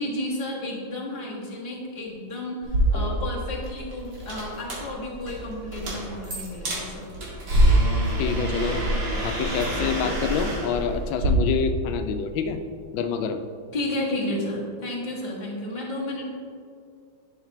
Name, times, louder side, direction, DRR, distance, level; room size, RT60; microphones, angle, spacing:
voice 1, 0.0-7.1 13.7-16.3, left 1 dB, 25° left, -4 dB, 1.5 m, -32 dB
sound 1, 2.6-11.3, right 1 dB, 60° right, 2.5 m, -26 dB
voice 2, 8.2-8.8 9.2-12.6 12.9-13.4, left 6 dB, 90° left, 8 dB, 1.3 m, -27 dB
11.0 x 6.7 x 3.0 m, 2.4 s
omnidirectional pair, 2.1 m